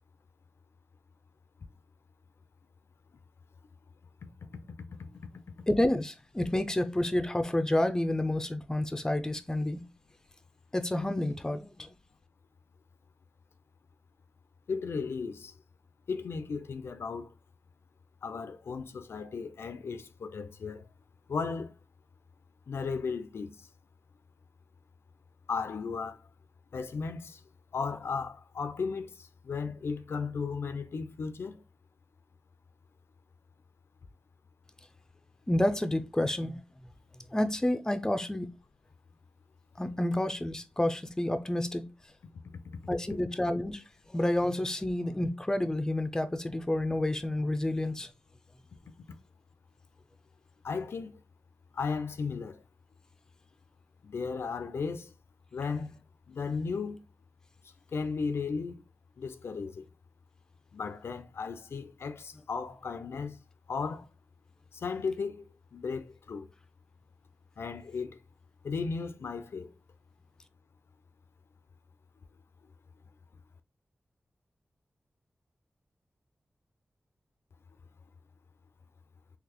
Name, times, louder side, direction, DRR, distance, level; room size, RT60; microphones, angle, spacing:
voice 1, 5.7-9.8 10.7-11.9 35.5-36.6 37.3-38.5 39.8-41.9 42.9-43.8 44.1-48.1, left 1 dB, 15° left, 0.5 m, -29 dB
voice 2, 14.7-15.6 16.1-17.3 18.2-20.9 21.3-21.7 22.7-23.7 25.5-26.3 26.7-27.4 27.7-31.6 50.6-51.2 51.7-52.6 54.0-55.1 55.5-56.0 56.3-57.0 57.9-58.8 59.2-59.9 60.7-63.4 63.7-64.1 64.7-66.5 67.6-68.2 68.6-69.7, left 5 dB, 80° left, 0.4 m, -35 dB
3.9 x 2.9 x 2.9 m
wide cardioid pair, 75°, 4 cm